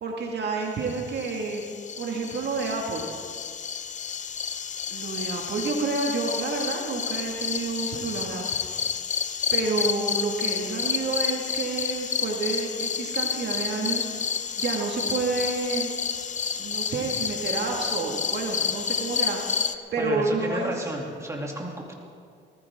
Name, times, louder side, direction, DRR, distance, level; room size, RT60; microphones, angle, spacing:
voice 1, 0.0-1.6 2.0-3.1 4.9-8.6 9.5-15.9 16.6-20.7, right 3 dB, 60° right, 0 dB, 1.9 m, -29 dB
sound 1, 0.9-19.7, left 7 dB, 40° left, 0.6 m, -30 dB
voice 2, 20.0-21.9, right 1 dB, 15° right, -1 dB, 2.7 m, -32 dB
20.0 x 14.5 x 3.7 m, 2.2 s
cardioid pair, 90°, 20 cm